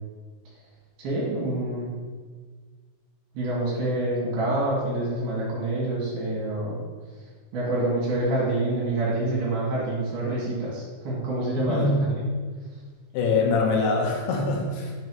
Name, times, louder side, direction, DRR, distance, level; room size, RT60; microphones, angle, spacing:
voice 1, 1.0-1.9 3.3-6.8 7.5-11.8, right 2 dB, 65° right, -6 dB, 3.3 m, -27 dB
voice 2, 11.6-12.1 13.1-14.9, left 3 dB, 80° left, 0 dB, 2.5 m, -24 dB
6.8 x 3.1 x 4.5 m, 1.5 s
omnidirectional pair, 5.1 m